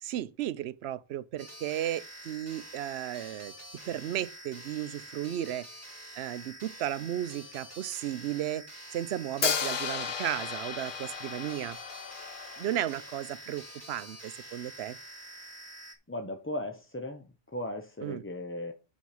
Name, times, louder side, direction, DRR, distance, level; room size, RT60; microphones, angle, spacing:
voice 1, 0.0-3.5 3.9-5.8 6.1-11.8 12.6-15.0 18.0-18.2, right 12 dB, 75° right, 0.8 m, -34 dB
sound 1, 1.4-15.9, right 1 dB, 15° right, 1.5 m, -47 dB
Hi-hat, 9.4-13.4, left 7 dB, 55° left, 0.9 m, -34 dB
voice 2, 16.1-17.3 17.5-18.7, left 1 dB, 15° left, 0.5 m, -36 dB
6.3 x 6.0 x 5.6 m
omnidirectional pair, 1.1 m